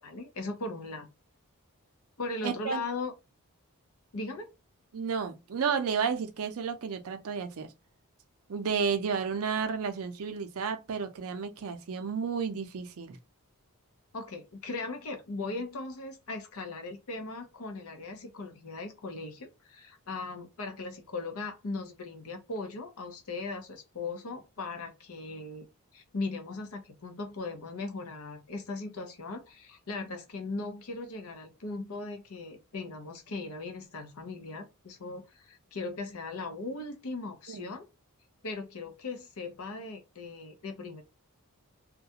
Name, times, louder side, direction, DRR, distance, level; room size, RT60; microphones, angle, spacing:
voice 1, 0.0-1.1 2.2-3.1 4.1-4.5 14.1-25.7 25.9-37.9 38.4-41.0, left 3 dB, 70° left, 0.7 m, -38 dB
voice 2, 2.4-2.8 4.9-7.7 8.5-13.2 37.5-37.7, right 6 dB, 70° right, 0.5 m, -32 dB
2.3 x 2.2 x 2.7 m
head